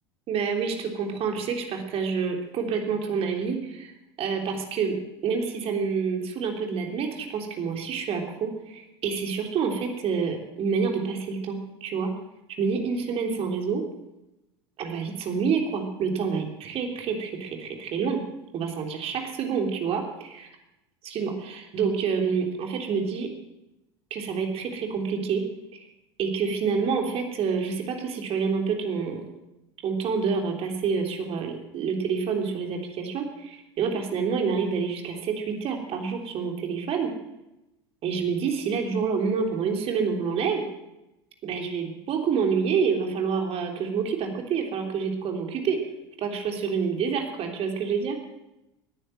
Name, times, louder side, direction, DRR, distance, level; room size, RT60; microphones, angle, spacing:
voice 1, 0.3-4.9 5.2-12.1 12.6-13.8 14.8-18.2 18.5-20.5 21.0-23.3 24.1-25.4 25.7-25.8 26.2-29.2 29.8-37.1 38.0-40.7 41.4-45.8 46.2-48.2, right 5 dB, 45° right, 3 dB, 3.3 m, -28 dB
19.0 x 10.0 x 7.7 m, 0.94 s
figure-of-eight pair, 70°, 14 cm